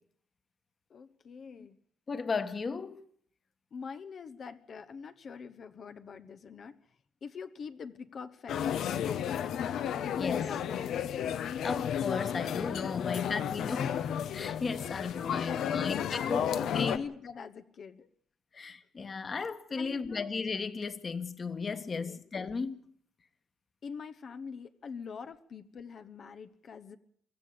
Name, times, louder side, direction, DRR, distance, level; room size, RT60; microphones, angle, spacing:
voice 1, 0.9-1.8 3.7-6.8 7.2-9.2 10.0-11.1 13.1-13.2 14.7-14.9 15.5-18.1 19.8-20.3 22.0-22.2 23.8-27.0, left 5 dB, 55° left, 1.1 m, -43 dB
voice 2, 2.1-3.0 10.2-10.4 11.5-14.0 14.3-17.0 18.5-22.9, left 4 dB, 40° left, 1.7 m, -35 dB
sound 1, 8.5-17.0, left 9 dB, 75° left, 1.2 m, -33 dB
24.0 x 14.5 x 8.5 m
cardioid pair, 90°, 0 cm